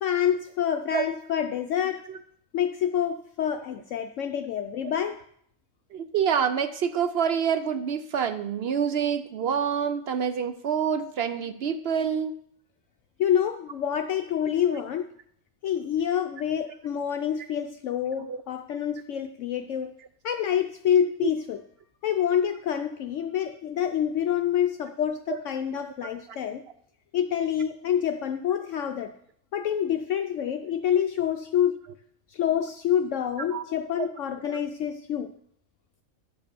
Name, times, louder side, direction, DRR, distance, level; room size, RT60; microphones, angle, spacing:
voice 1, 0.0-2.0 2.5-5.2 13.2-15.1 15.6-19.9 20.2-21.6 22.0-26.6 27.1-29.1 29.5-31.8 32.3-35.3, left 9 dB, 70° left, 6 dB, 0.8 m, -27 dB
voice 2, 5.9-12.3 14.7-14.8 18.3-18.4 21.2-21.3 25.3-25.4 33.5-33.6 34.5-34.6, right 7 dB, 65° right, 10 dB, 0.6 m, -27 dB
10.5 x 4.9 x 6.9 m, 0.66 s
omnidirectional pair, 1.5 m